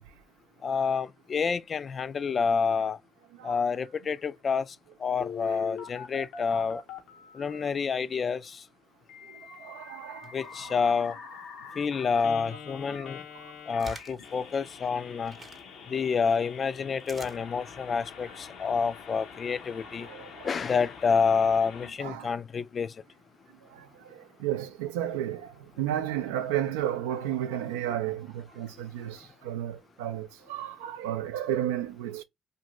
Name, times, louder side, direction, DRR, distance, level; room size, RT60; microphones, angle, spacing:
voice 1, 0.6-3.0 3.4-6.8 7.3-8.6 10.3-11.2 11.8-13.2 13.7-15.3 15.9-20.1 20.4-22.9, left 5 dB, 45° left, 0.3 m, -28 dB
Telephone, 5.2-7.7 9.1-21.9, left 6 dB, 75° left, 0.7 m, -44 dB
voice 2, 9.3-10.3 10.6-10.9 12.1-12.2 13.3-13.5 20.0-20.5 22.0-22.3 23.7-32.2, right 11 dB, 90° right, 0.4 m, -33 dB
sound 1, 10.2-11.1 11.7-12.3 12.8-15.6 16.2-17.4, right 4 dB, 40° right, 0.7 m, -49 dB
2.6 x 2.6 x 2.9 m
hypercardioid pair, 60°, 0 cm